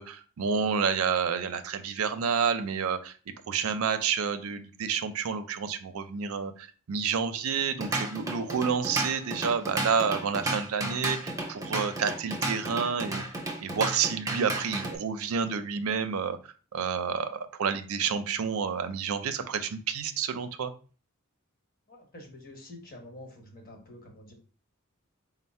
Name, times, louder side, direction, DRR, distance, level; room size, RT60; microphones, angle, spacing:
voice 1, 0.0-3.1 3.5-13.2 13.6-20.7, right 6 dB, 80° right, 9 dB, 0.5 m, -29 dB
Drum kit / Drum, 7.6-15.0, right 2 dB, 15° right, 0.6 m, -33 dB
voice 2, 21.9-24.3, left 1 dB, 45° left, 2 dB, 1.1 m, -47 dB
4.2 x 2.0 x 4.2 m, 0.38 s
head